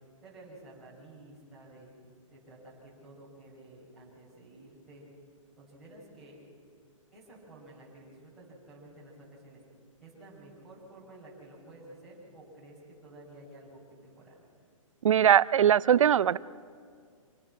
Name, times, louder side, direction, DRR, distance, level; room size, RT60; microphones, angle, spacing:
voice 1, 0.2-1.9 2.3-5.1 5.6-6.4 7.1-9.6 10.0-14.4, right 1 dB, ahead, -10 dB, 6.3 m, -52 dB
voice 2, 15.0-16.4, right 9 dB, 70° right, 18 dB, 0.6 m, -21 dB
27.5 x 18.5 x 6.1 m, 2.1 s
hypercardioid pair, 175°, 17 cm